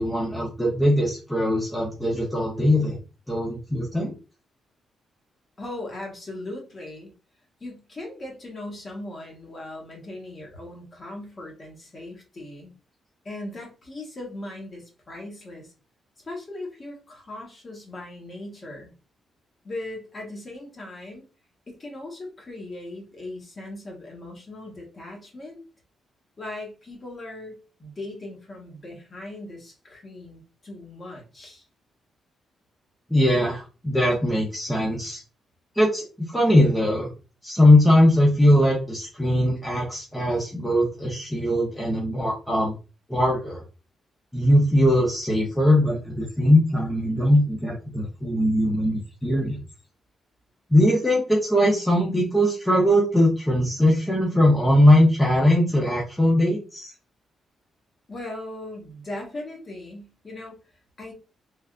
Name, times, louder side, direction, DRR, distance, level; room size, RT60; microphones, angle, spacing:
voice 1, 0.0-3.0 3.3-4.1 33.1-35.2 35.8-37.1 37.4-42.7 43.1-43.6 44.3-49.6 50.7-56.9, left 1 dB, 5° left, -4 dB, 0.6 m, -20 dB
voice 2, 5.6-7.1 7.6-12.7 13.2-15.7 16.2-18.9 19.6-21.2 21.7-25.6 26.4-31.6 58.1-60.6 61.0-61.1, left 2 dB, 25° left, 0 dB, 1.0 m, -38 dB
3.3 x 2.3 x 2.4 m, 0.33 s
cardioid pair, 160°, 0 cm